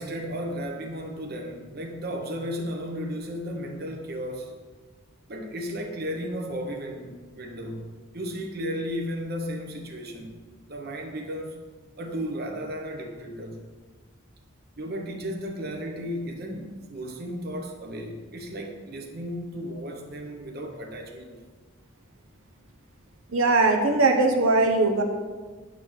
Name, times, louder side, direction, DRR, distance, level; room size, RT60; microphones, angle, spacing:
voice 1, 0.0-4.5 5.3-10.4 10.7-11.6 12.0-13.6 14.8-21.4, equal, 50° right, 2 dB, 0.8 m, -34 dB
voice 2, 23.3-25.0, right 3 dB, 80° right, 3 dB, 0.8 m, -20 dB
9.0 x 3.4 x 6.2 m, 1.4 s
head